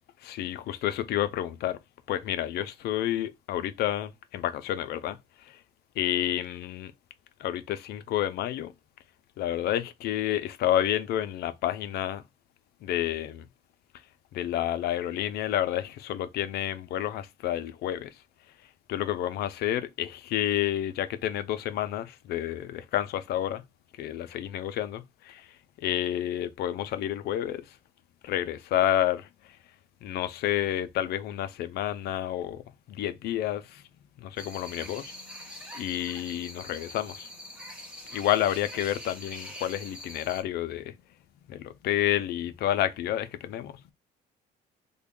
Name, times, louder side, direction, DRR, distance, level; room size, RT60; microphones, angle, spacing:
voice 1, 0.2-1.8 2.1-5.6 6.0-6.9 7.4-8.7 9.4-12.2 12.8-13.5 14.3-18.1 18.9-23.6 24.0-25.5 25.8-27.8 28.2-29.6 30.0-32.6 32.9-33.8 34.2-37.3 38.1-40.9 41.5-43.9, left 12 dB, 70° left, 0.5 m, -30 dB
sound 1, 34.4-40.4, equal, 5° right, 0.8 m, -43 dB
3.5 x 2.2 x 3.5 m
cardioid pair, 110°, 17 cm